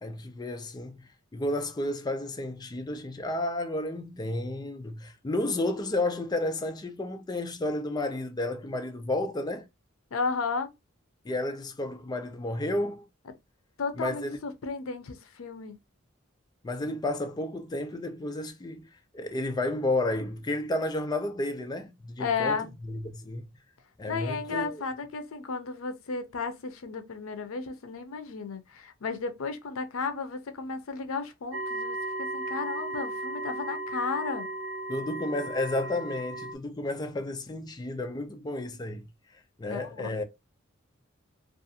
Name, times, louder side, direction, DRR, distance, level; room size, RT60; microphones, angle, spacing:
voice 1, 0.0-9.7 11.2-13.1 14.0-14.4 16.6-18.9 19.1-22.6 22.9-23.5 24.0-24.8 34.9-39.1 39.6-40.2, left 1 dB, 20° left, 0.4 m, -32 dB
voice 2, 10.1-10.7 13.8-15.8 22.2-22.7 24.1-34.5 39.7-40.2, left 4 dB, 85° left, 0.5 m, -33 dB
sound 1, 31.5-36.5, right 1 dB, 60° right, 0.5 m, -35 dB
2.5 x 2.3 x 2.7 m
head